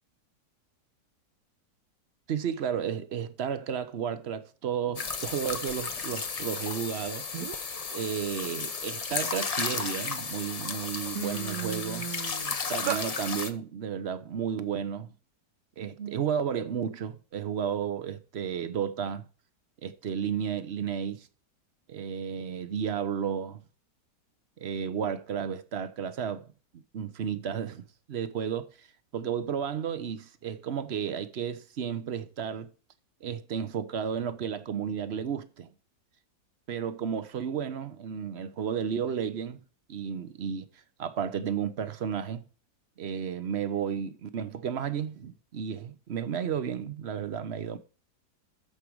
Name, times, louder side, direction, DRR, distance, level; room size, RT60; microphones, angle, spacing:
voice 1, 2.3-7.2 7.9-12.1 12.7-15.1 15.8-19.3 19.8-21.3 21.9-23.6 24.6-26.5 26.7-27.8 28.1-28.9 29.1-32.7 33.2-35.7 36.7-39.6 39.9-40.7 41.0-42.4 43.0-47.8, right 8 dB, 50° right, 0.9 m, -32 dB
sound 1, 4.9-13.5, left 5 dB, 50° left, 0.4 m, -34 dB
sound 2, 7.3-7.8 8.2-9.8 10.4-10.5 10.8-13.1, right 13 dB, 75° right, 1.2 m, -36 dB
13.0 x 5.1 x 4.7 m
omnidirectional pair, 1.8 m